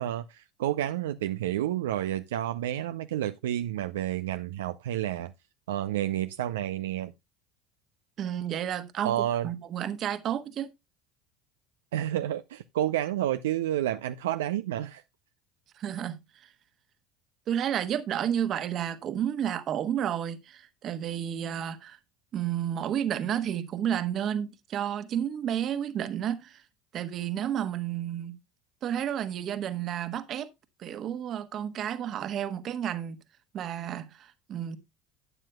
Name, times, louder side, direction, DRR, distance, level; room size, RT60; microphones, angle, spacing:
voice 1, 0.0-5.3 5.7-7.1 9.0-9.5 11.9-15.0, right 12 dB, 80° right, 0.4 m, -30 dB
voice 2, 8.2-10.7 15.7-16.5 17.5-22.0 22.3-26.6 26.9-28.4 28.8-30.5 30.8-33.2 33.5-34.8, right 10 dB, 50° right, 1.3 m, -31 dB
12.0 x 8.9 x 2.2 m
hypercardioid pair, 75°, 0 cm